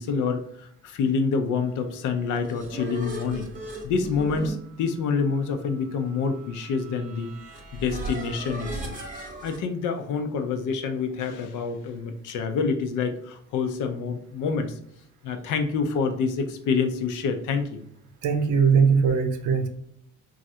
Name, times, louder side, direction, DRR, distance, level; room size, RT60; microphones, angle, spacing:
voice 1, 0.0-3.5 3.8-7.3 7.7-9.0 9.4-14.8 15.2-17.8, left 5 dB, 80° left, 7 dB, 0.5 m, -27 dB
sound 1, 2.1-9.6, right 1 dB, 25° right, 0.8 m, -38 dB
voice 2, 18.2-19.7, right 6 dB, 80° right, 6 dB, 0.6 m, -20 dB
3.1 x 2.4 x 2.7 m, 0.68 s
cardioid pair, 90°, 30 cm